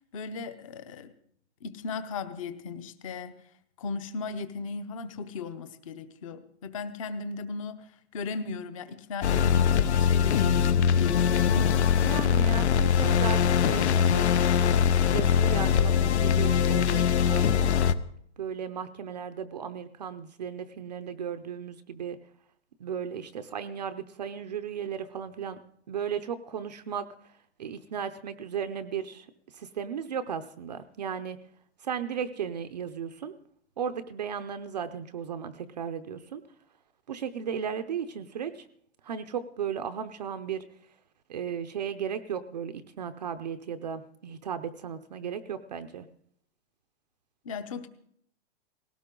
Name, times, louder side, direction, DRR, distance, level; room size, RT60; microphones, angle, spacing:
voice 1, 0.1-1.1 1.6-3.3 3.8-11.7 47.4-47.9, left 4 dB, 30° left, 11 dB, 0.8 m, -37 dB
sound 1, 9.2-17.9, left 8 dB, 70° left, 0.9 m, -22 dB
voice 2, 12.0-14.5 15.0-17.6 18.4-22.2 22.8-25.6 25.9-27.1 27.6-29.3 29.5-31.4 31.8-33.3 33.8-36.4 37.1-38.7 39.0-40.6 41.3-46.1, right 7 dB, 40° right, 9 dB, 0.6 m, -35 dB
19.5 x 17.5 x 3.8 m, 0.67 s
hypercardioid pair, 180°, 35 cm